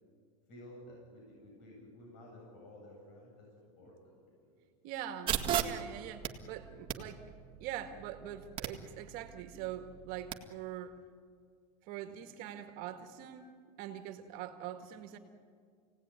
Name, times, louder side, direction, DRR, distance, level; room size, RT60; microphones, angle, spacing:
voice 1, 0.5-3.5 3.8-4.6, left 1 dB, 50° left, -2 dB, 8.0 m, -53 dB
voice 2, 4.8-7.2 7.6-11.0 11.8-13.5 13.8-15.2, right 10 dB, 45° right, 6 dB, 1.9 m, -43 dB
sound 1, 5.3-10.3, right 10 dB, 25° right, 1.7 m, -38 dB
28.0 x 18.0 x 9.6 m, 2.2 s
supercardioid pair, 155°, 19 cm